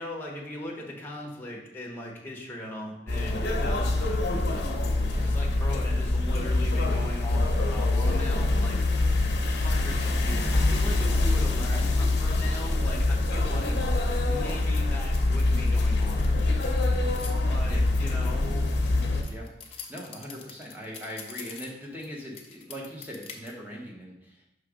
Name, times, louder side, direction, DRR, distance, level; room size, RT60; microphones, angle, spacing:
voice 1, 0.0-4.8 5.2-8.8 9.4-13.8 14.3-16.6 17.5-18.6, left 1 dB, 10° left, -2 dB, 1.0 m, -39 dB
sound 1, 3.1-19.2, left 2 dB, 65° left, 0.9 m, -25 dB
sound 2, 15.1-17.3 17.8-22.1 22.3-23.5, left 6 dB, 35° left, 0.7 m, -45 dB
voice 2, 19.3-24.5, equal, 10° right, -3 dB, 1.1 m, -41 dB
5.9 x 3.3 x 4.9 m, 0.87 s
head